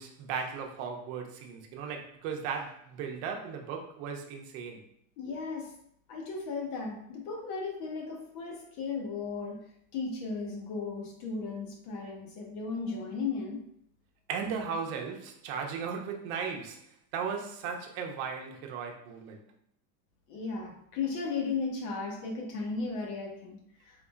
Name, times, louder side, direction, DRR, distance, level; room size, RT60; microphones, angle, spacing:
voice 1, 0.0-4.8 14.3-16.8 17.1-19.4, right 6 dB, 55° right, 0.8 m, -36 dB
voice 2, 5.2-5.7 6.1-9.6 9.9-13.6 20.3-23.9, left 4 dB, 60° left, 1.2 m, -35 dB
4.0 x 3.6 x 2.4 m
supercardioid pair, 160°, 49 cm